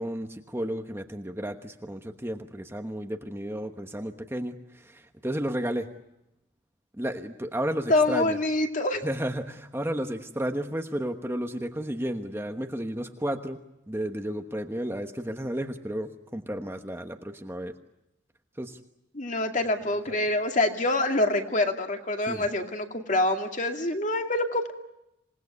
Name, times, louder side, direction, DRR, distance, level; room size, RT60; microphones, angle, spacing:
voice 1, 0.0-5.9 7.0-8.4 9.0-13.6 13.9-17.7 18.6-18.8 20.1-20.2 22.3-22.4, right 1 dB, 10° right, 5 dB, 1.1 m, -32 dB
voice 2, 7.9-9.0 19.1-24.7, left 2 dB, 40° left, 4 dB, 2.3 m, -26 dB
27.0 x 19.0 x 9.5 m, 0.88 s
head